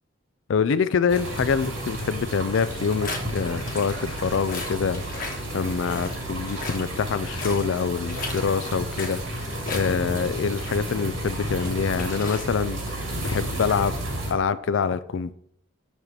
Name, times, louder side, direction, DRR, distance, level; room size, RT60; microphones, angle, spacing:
voice 1, 0.5-12.8 13.2-13.9 14.3-15.3, left 6 dB, 70° left, 0.4 m, -25 dB
sound 1, 1.1-14.3, right 1 dB, 70° right, 2.0 m, -32 dB
sound 2, 2.5-13.0, left 3 dB, 45° left, 1.2 m, -39 dB
6.7 x 3.1 x 5.5 m
head